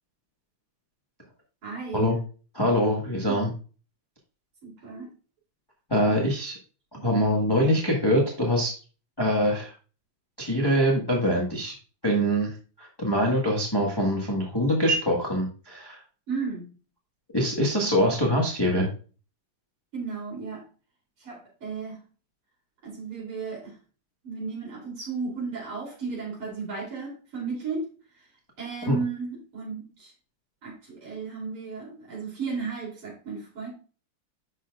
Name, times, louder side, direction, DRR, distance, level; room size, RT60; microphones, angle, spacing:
voice 1, 1.6-2.1 3.3-3.4 4.6-5.1 6.9-7.2 16.3-16.7 19.9-20.7 21.2-22.0 22.8-23.8 24.2-28.3 28.6-30.1 30.6-33.7, right 5 dB, 80° right, -5 dB, 4.0 m, -34 dB
voice 2, 2.5-3.5 5.9-6.6 7.0-8.7 9.2-9.7 10.4-11.7 12.0-16.0 17.3-18.9 28.9-29.0, equal, 10° left, -2 dB, 1.4 m, -24 dB
9.7 x 6.8 x 2.4 m, 0.36 s
omnidirectional pair, 2.4 m